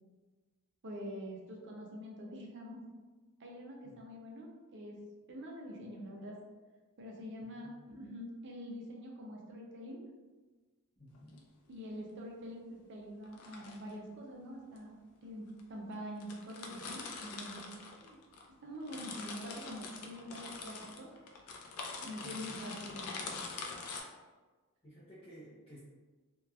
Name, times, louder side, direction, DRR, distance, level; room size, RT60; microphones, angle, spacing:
voice 1, 0.8-2.9 3.4-5.0 5.3-6.4 7.0-10.1 11.7-14.9 15.2-18.2 18.6-21.2 22.0-23.5, equal, 55° right, -1 dB, 0.5 m, -45 dB
voice 2, 7.4-7.8 10.9-11.3 22.2-22.4 24.8-25.8, equal, 25° left, -11 dB, 0.6 m, -55 dB
sound 1, 11.1-11.4 13.2-13.9 14.8-14.9 15.6-15.7 15.9-16.0 16.2-18.5 18.7-24.0, left 4 dB, 80° left, 0.4 m, -44 dB
2.8 x 2.3 x 2.3 m, 1.3 s
head